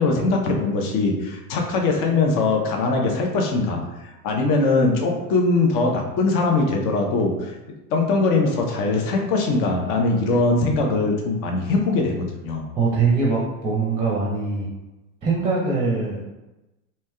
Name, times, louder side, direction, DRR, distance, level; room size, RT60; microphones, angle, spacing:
voice 1, 0.0-3.8 4.2-7.5 7.9-12.6, left 3 dB, 45° left, 1 dB, 0.7 m, -21 dB
voice 2, 12.8-14.7 15.2-16.2, right 4 dB, 15° right, -4 dB, 0.6 m, -22 dB
3.2 x 2.7 x 2.2 m, 1.0 s
hypercardioid pair, 85°, 47 cm